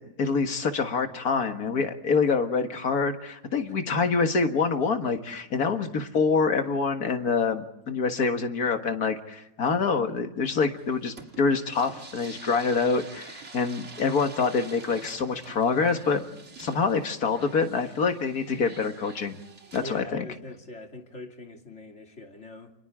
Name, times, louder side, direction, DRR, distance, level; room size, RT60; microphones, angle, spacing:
voice 1, 0.2-16.2 16.6-19.4 19.7-20.3, left 4 dB, 85° left, 6 dB, 2.2 m, -26 dB
sound 1, 10.7-20.0, right 3 dB, 50° right, 2.4 m, -47 dB
voice 2, 19.8-22.7, left 2 dB, 50° left, 2 dB, 3.0 m, -42 dB
29.0 x 27.0 x 3.7 m, 0.87 s
omnidirectional pair, 1.5 m